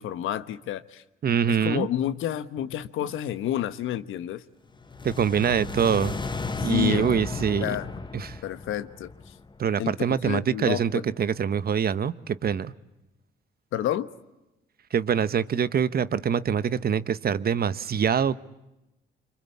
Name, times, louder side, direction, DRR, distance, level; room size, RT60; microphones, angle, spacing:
voice 1, 0.0-1.0 1.5-4.4 6.6-7.1 7.6-7.9 8.4-9.3 9.8-9.9 10.2-11.0 13.7-14.1, left 12 dB, 85° left, 1.4 m, -29 dB
voice 2, 1.2-1.9 5.0-6.1 6.6-7.7 8.1-8.4 9.6-12.7 14.9-18.4, right 7 dB, 50° right, 1.2 m, -24 dB
sound 1, 4.8-9.9, left 4 dB, 25° left, 1.3 m, -34 dB
27.0 x 25.5 x 8.6 m
cardioid pair, 90°, 20 cm